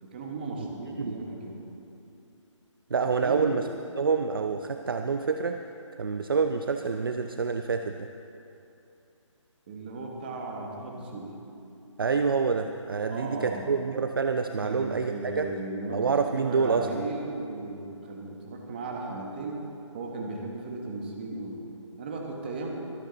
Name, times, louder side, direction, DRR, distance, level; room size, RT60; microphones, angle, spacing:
voice 1, 0.0-1.6 3.2-3.5 9.7-11.3 13.0-13.8 14.6-16.0 16.3-19.6 19.9-21.6 22.0-22.7, right 3 dB, 20° right, 0 dB, 1.2 m, -36 dB
voice 2, 2.9-3.6 4.0-5.6 6.0-8.1 12.0-15.5 15.9-17.0, right 5 dB, 45° right, 7 dB, 0.5 m, -27 dB
23.5 x 8.9 x 3.9 m, 2.7 s
hypercardioid pair, 170°, 16 cm